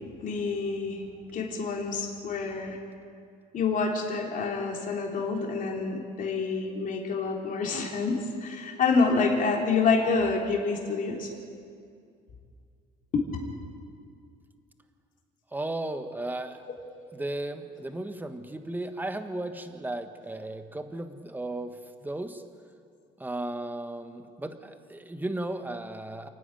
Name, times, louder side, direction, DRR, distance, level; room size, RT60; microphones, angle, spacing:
voice 1, 0.2-1.0 1.3-2.8 3.5-11.3, left 4 dB, 50° left, 0 dB, 3.5 m, -27 dB
voice 2, 15.5-16.7 17.1-22.4 23.2-26.3, right 1 dB, 10° right, 8 dB, 1.4 m, -35 dB
29.0 x 9.9 x 9.1 m, 2.3 s
cardioid pair, 110°, 17 cm